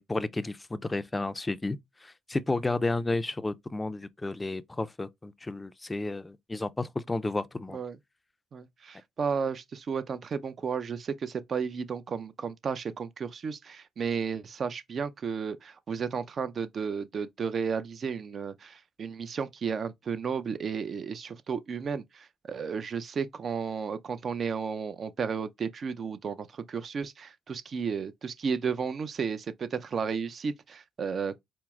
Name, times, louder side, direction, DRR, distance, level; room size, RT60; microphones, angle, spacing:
voice 1, 0.0-7.8, left 2 dB, 15° left, 0.4 m, -32 dB
voice 2, 8.5-31.4, right 6 dB, 50° right, 0.5 m, -33 dB
4.5 x 2.0 x 3.5 m
cardioid pair, 90°, 0 cm